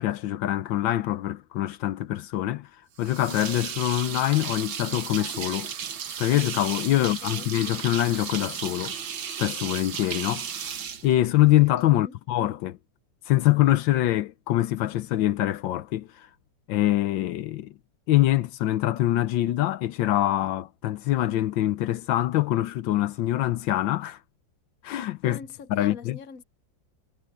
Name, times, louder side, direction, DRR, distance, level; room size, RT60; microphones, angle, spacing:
voice 1, 0.0-2.7 3.0-5.7 6.2-8.9 9.4-10.5 11.0-12.8 13.3-16.3 16.7-17.7 18.1-24.2 24.8-25.4 25.7-26.2, left 14 dB, 80° left, 1.4 m, -24 dB
sound 1, 3.0-11.8, right 8 dB, 85° right, 2.2 m, -35 dB
voice 2, 7.0-7.5 11.9-12.2 25.2-26.4, left 6 dB, 50° left, 1.4 m, -42 dB
omnidirectional pair, 2.0 m